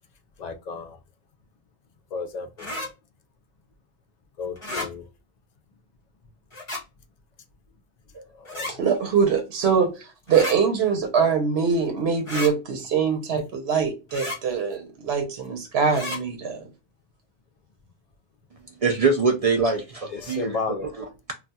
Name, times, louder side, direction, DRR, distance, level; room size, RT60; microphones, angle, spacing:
voice 1, 0.4-1.0 2.1-2.7 4.4-5.1 8.3-8.8 20.1-20.9, left 4 dB, 50° left, 0.6 m, -33 dB
sound 1, 2.6-2.9 4.6-4.9 6.5-6.8 8.5-8.7 10.3-10.6 12.3-12.5 14.1-14.4 15.9-16.2, left 1 dB, 30° left, 1.0 m, -32 dB
voice 2, 8.7-9.9 10.3-16.6, right 6 dB, 85° right, 1.0 m, -23 dB
voice 3, 18.8-20.6 21.0-21.3, right 4 dB, 55° right, 0.4 m, -23 dB
2.3 x 2.3 x 3.9 m
omnidirectional pair, 1.0 m